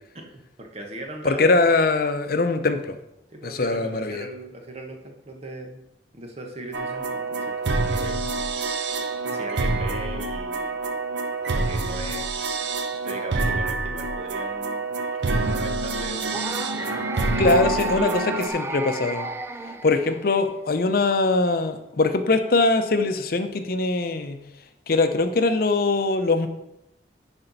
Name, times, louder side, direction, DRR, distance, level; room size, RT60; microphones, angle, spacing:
voice 1, 0.6-1.6 3.3-5.8 6.1-8.2 9.2-10.8 11.4-12.3 13.0-14.9 15.2-18.8, right 1 dB, 35° right, 3 dB, 1.1 m, -38 dB
voice 2, 1.2-3.0 3.4-4.2 17.4-18.2 18.5-19.3 19.8-24.4 24.9-26.5, left 3 dB, 55° left, 8 dB, 0.7 m, -22 dB
sound 1, 6.7-18.5, right 3 dB, 85° right, 0.7 m, -27 dB
sound 2, 16.3-20.5, right 2 dB, 15° right, 0.3 m, -32 dB
10.0 x 4.4 x 4.0 m, 0.87 s
head